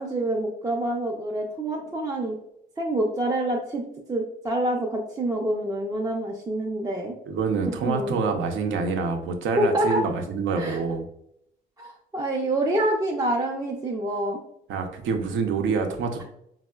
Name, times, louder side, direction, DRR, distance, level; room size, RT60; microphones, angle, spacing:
voice 1, 0.0-2.4 2.8-7.1 7.7-8.2 9.6-10.0 10.6-10.8 11.8-14.4, right 1 dB, 20° right, -1 dB, 0.4 m, -27 dB
voice 2, 7.3-11.1 14.7-16.2, right 4 dB, 75° right, 5 dB, 0.5 m, -26 dB
4.3 x 2.0 x 2.2 m, 0.76 s
cardioid pair, 90°, 20 cm